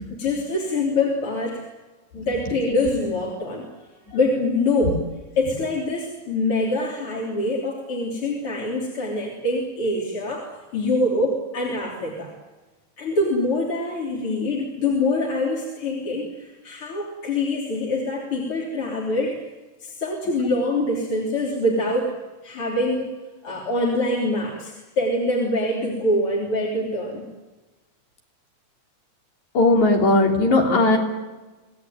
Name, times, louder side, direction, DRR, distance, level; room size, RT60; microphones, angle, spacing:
voice 1, 0.2-1.6 2.1-3.7 4.1-5.0 5.4-10.5 10.7-12.3 13.0-19.4 19.8-22.1 22.4-23.2 23.4-27.3, left 2 dB, 45° left, -2 dB, 4.3 m, -24 dB
voice 2, 29.5-31.0, left 2 dB, 70° left, 2 dB, 4.9 m, -17 dB
26.5 x 18.5 x 9.3 m, 1.2 s
omnidirectional pair, 3.4 m